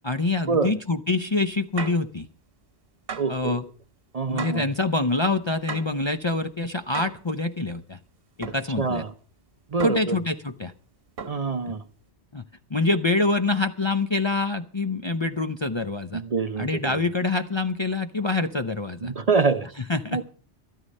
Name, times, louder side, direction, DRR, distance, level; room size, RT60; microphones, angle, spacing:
voice 1, 0.0-2.3 3.3-3.7 4.3-8.0 8.4-9.0 9.8-10.7 11.7-11.8 12.3-12.4 12.7-16.2 16.6-19.1 19.6-20.3, left 3 dB, 30° left, 6 dB, 0.6 m, -26 dB
sound 1, 1.8-2.1 3.1-3.4 4.4-4.7 5.7-6.0 6.9-7.3 8.4-8.7 9.8-10.2 11.2-11.5, right 5 dB, 60° right, 1.3 m, -36 dB
voice 2, 3.2-3.5 4.1-4.6 8.8-9.1 9.7-10.2 11.3-11.8 16.1-17.0 19.0-19.7 20.1-20.3, right 4 dB, 40° right, 11 dB, 0.7 m, -25 dB
13.0 x 13.0 x 5.3 m, 0.40 s
omnidirectional pair, 1.1 m